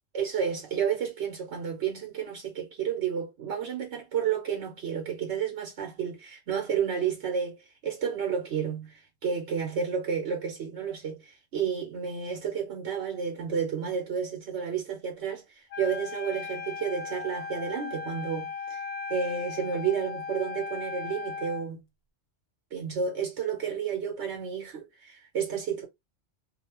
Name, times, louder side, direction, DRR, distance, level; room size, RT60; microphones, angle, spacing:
voice 1, 0.1-18.8 19.1-21.8 22.7-25.9, right 7 dB, 80° right, 1.1 m, -31 dB
Wind instrument woodwind instrument, 15.7-21.7, left 5 dB, 70° left, 0.8 m, -37 dB
2.7 x 2.3 x 2.9 m
omnidirectional pair, 1.1 m